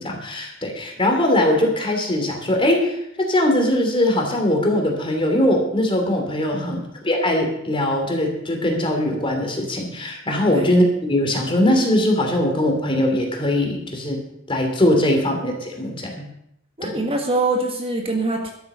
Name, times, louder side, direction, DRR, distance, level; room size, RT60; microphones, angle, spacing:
voice 1, 0.0-16.2 16.8-17.0, left 1 dB, 25° left, 2 dB, 3.0 m, -21 dB
voice 2, 6.5-6.8 10.5-10.7 15.3-15.4 16.8-18.5, right 2 dB, 25° right, 2 dB, 1.7 m, -24 dB
12.5 x 9.0 x 6.8 m, 0.76 s
head